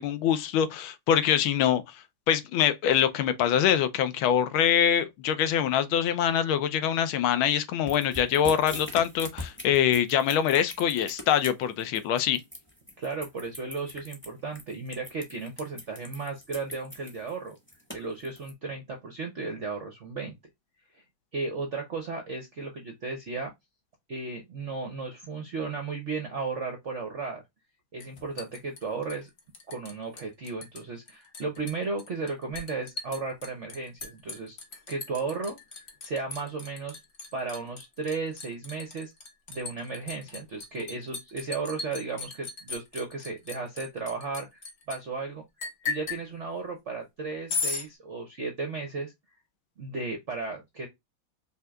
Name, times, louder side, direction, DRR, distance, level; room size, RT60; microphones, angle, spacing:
voice 1, 0.0-12.4, left 9 dB, 80° left, 1.5 m, -24 dB
sound 1, 7.9-18.5, left 1 dB, 10° left, 0.9 m, -41 dB
voice 2, 13.0-17.5 17.9-20.3 20.9-21.0 21.3-23.5 24.1-27.4 27.9-29.3 29.7-34.6 34.9-35.6 36.0-37.0 37.3-39.1 39.5-45.4 45.8-49.1 49.8-50.9, right 4 dB, 60° right, 0.7 m, -35 dB
Liquid, 28.0-29.9 30.2-30.8 31.1-45.0 45.6-46.2 47.5-47.9, left 4 dB, 40° left, 0.9 m, -37 dB
5.5 x 2.8 x 2.3 m
omnidirectional pair, 2.3 m